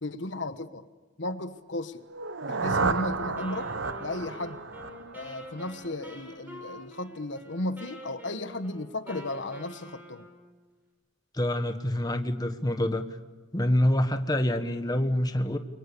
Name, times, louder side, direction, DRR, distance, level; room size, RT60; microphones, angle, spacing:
voice 1, 0.0-0.9 1.2-2.0 2.4-3.7 4.0-4.6 5.1-10.3, left 2 dB, 70° left, 11 dB, 1.2 m, -35 dB
sound 1, 2.1-6.0, right 4 dB, 80° right, 1.1 m, -32 dB
Wind instrument woodwind instrument, 3.4-10.5, equal, 10° right, 6.6 m, -46 dB
voice 2, 11.3-13.0 13.5-15.6, left 1 dB, 20° left, 8 dB, 1.4 m, -26 dB
30.0 x 24.0 x 6.9 m, 1.3 s
head